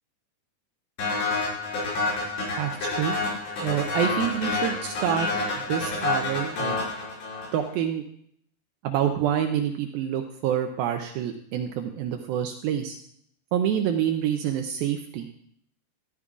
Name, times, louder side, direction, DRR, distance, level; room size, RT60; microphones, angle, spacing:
sound 1, 1.0-7.7, left 3 dB, 75° left, 7.0 m, -28 dB
voice 1, 2.6-3.2 3.6-5.3 5.5-6.8 7.5-8.0 8.8-13.0 13.5-15.3, right 9 dB, 90° right, 5 dB, 2.1 m, -27 dB
14.0 x 13.5 x 2.4 m, 0.68 s
omnidirectional pair, 5.0 m